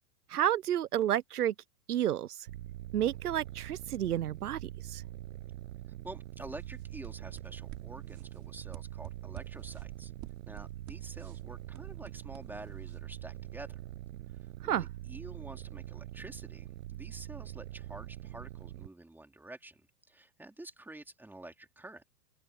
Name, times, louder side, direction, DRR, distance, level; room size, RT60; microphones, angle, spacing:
voice 1, 0.3-1.5 1.9-2.5 2.9-5.0 14.6-14.9, right 11 dB, 80° right, 1.0 m, -31 dB
sound 1, 2.5-18.9, right 14 dB, 60° right, 7.5 m, -44 dB
voice 2, 6.0-10.1 10.5-13.8 14.6-22.0, right 2 dB, 5° right, 2.9 m, -48 dB
sound 2, 6.4-13.0, right 18 dB, 40° right, 6.7 m, -51 dB
hypercardioid pair, 110°, 45 cm